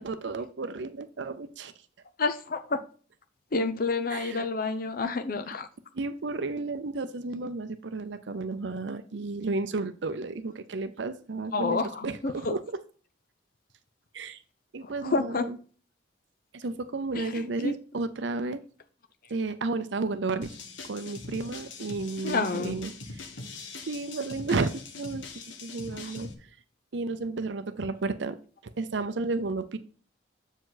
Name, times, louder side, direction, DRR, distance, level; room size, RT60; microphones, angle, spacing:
voice 1, 0.0-1.7 4.1-4.5 5.9-12.6 14.1-14.4 14.7-15.6 16.5-18.6 19.3-20.5 20.9-23.2 23.9-25.2 25.6-26.5 26.9-28.4 28.6-29.8, right 3 dB, 75° right, 0.6 m, -32 dB
voice 2, 2.2-2.8 3.5-5.7 11.5-12.6 14.8-15.4 17.1-17.8 22.2-22.8 26.0-26.1, left 3 dB, 50° left, 0.7 m, -29 dB
sound 1, 20.4-26.3, left 3 dB, 85° left, 1.4 m, -42 dB
7.7 x 5.1 x 3.9 m
head